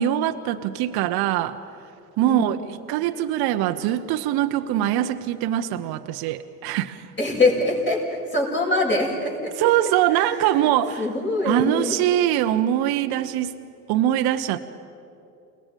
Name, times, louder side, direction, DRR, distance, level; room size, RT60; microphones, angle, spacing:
voice 1, 0.0-1.6 2.2-2.6 2.9-7.1 9.6-11.0 11.4-13.5 13.9-14.6, right 12 dB, 55° right, 8 dB, 1.0 m, -22 dB
voice 2, 2.3-2.6 7.2-9.6 10.1-10.7 11.0-12.0, left 2 dB, 25° left, -2 dB, 7.0 m, -24 dB
29.0 x 19.0 x 5.3 m, 2.7 s
hypercardioid pair, 70°, 46 cm